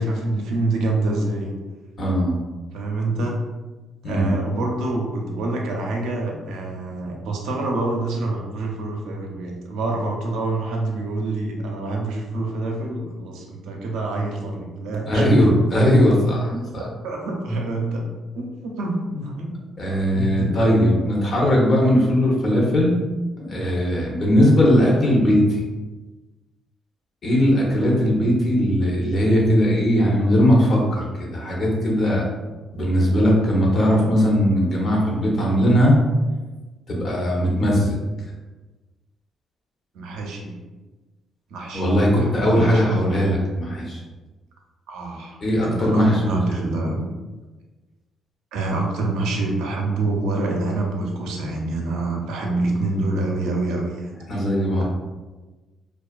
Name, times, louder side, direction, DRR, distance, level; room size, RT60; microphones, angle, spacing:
voice 1, 0.0-1.5 2.7-3.4 4.0-15.2 16.5-18.1 18.3-19.5 20.1-20.5 23.5-23.6 27.4-27.5 39.9-40.6 41.5-41.8 42.2-43.1 44.9-47.0 48.5-54.2, right 2 dB, 90° right, 0 dB, 0.4 m, -26 dB
voice 2, 2.0-2.3 4.0-4.4 15.1-16.9 19.8-23.0 23.4-25.6 27.2-32.2 32.7-36.0 36.9-37.9 41.7-44.0 45.4-46.3 46.6-46.8 54.3-54.8, equal, 50° left, -3 dB, 0.8 m, -19 dB
2.4 x 2.3 x 2.3 m, 1.2 s
cardioid pair, 90°, 0 cm